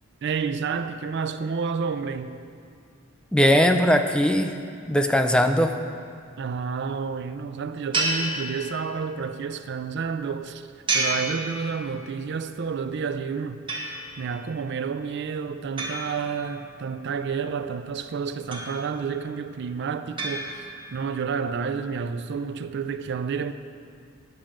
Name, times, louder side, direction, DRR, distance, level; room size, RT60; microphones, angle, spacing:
voice 1, 0.2-2.4 6.4-10.7 10.9-13.6 14.2-23.5, right 5 dB, 60° right, 0.4 m, -30 dB
voice 2, 3.3-4.6 4.8-5.8, equal, 5° left, 0.4 m, -20 dB
sound 1, 7.9-9.2 10.9-12.2 13.7-14.4 15.8-16.9 18.5-19.2 20.2-21.1, right 2 dB, 25° right, 1.3 m, -31 dB
11.0 x 5.1 x 7.4 m
head